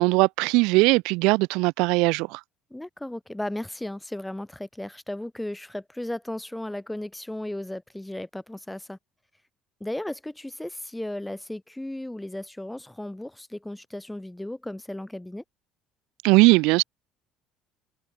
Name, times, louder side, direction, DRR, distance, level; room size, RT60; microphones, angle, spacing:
voice 1, 0.0-2.4 16.2-16.8, right 26 dB, 85° right, 2.4 m, -19 dB
voice 2, 2.7-9.0 9.8-15.4, left 1 dB, 5° left, 6.8 m, -35 dB
cardioid pair, 140°, 0 cm